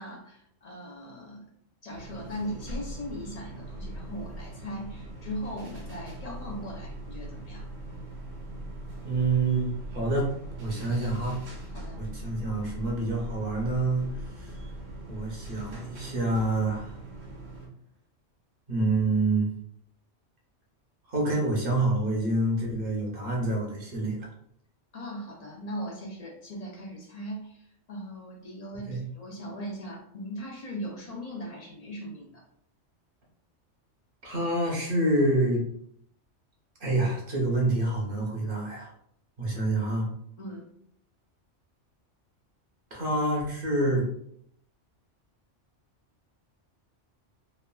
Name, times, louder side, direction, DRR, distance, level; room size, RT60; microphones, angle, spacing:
voice 1, 0.0-1.5 1.8-7.7 11.7-12.0 24.9-32.4 40.4-40.7, equal, 60° left, -1 dB, 0.4 m, -39 dB
sound 1, 1.9-17.7, right 1 dB, 85° right, 1.2 m, -41 dB
voice 2, 9.0-11.4 12.0-14.6 15.1-17.0 18.7-19.5 21.1-24.3 28.9-29.0 34.2-35.6 36.8-38.9 39.4-40.1 42.9-44.0, right 2 dB, 50° right, -2 dB, 0.8 m, -27 dB
3.1 x 2.3 x 2.2 m, 0.70 s
omnidirectional pair, 1.3 m